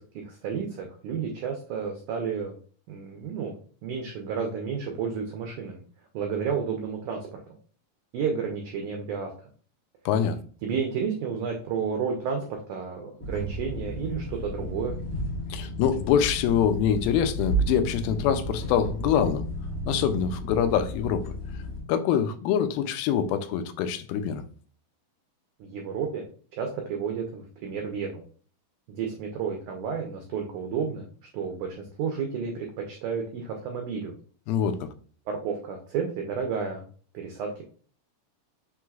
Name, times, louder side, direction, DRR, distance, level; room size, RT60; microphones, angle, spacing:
voice 1, 0.0-2.6 2.9-3.5 3.8-5.8 6.1-7.6 8.1-9.5 10.6-15.0 25.6-26.3 26.5-28.2 28.9-31.1 31.3-34.1 35.3-36.8 37.1-37.6, right 6 dB, 80° right, 1.8 m, -31 dB
voice 2, 10.1-10.4 15.5-19.5 19.9-21.2 21.9-24.4 34.5-34.9, left 8 dB, 85° left, 2.3 m, -25 dB
sound 1, 13.2-21.8, right 1 dB, 50° left, 1.7 m, -33 dB
5.9 x 3.1 x 2.3 m
omnidirectional pair, 4.3 m